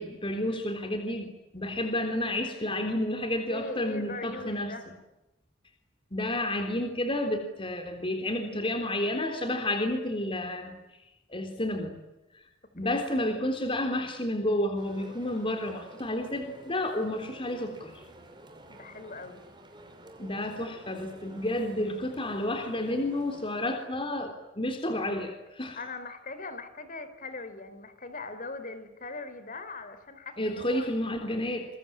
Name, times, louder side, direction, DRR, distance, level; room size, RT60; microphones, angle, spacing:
voice 1, 0.0-4.9 6.1-10.8 11.3-12.0 12.3-12.5 12.7-18.0 20.2-25.8 30.4-31.7, left 1 dB, 30° left, 5 dB, 3.6 m, -31 dB
voice 2, 3.5-4.8 12.8-13.1 18.7-19.4 25.7-30.9, left 3 dB, 45° left, 11 dB, 4.4 m, -40 dB
sound 1, 14.7-23.9, right 1 dB, 25° right, 5.9 m, -51 dB
28.0 x 24.5 x 8.9 m, 0.97 s
head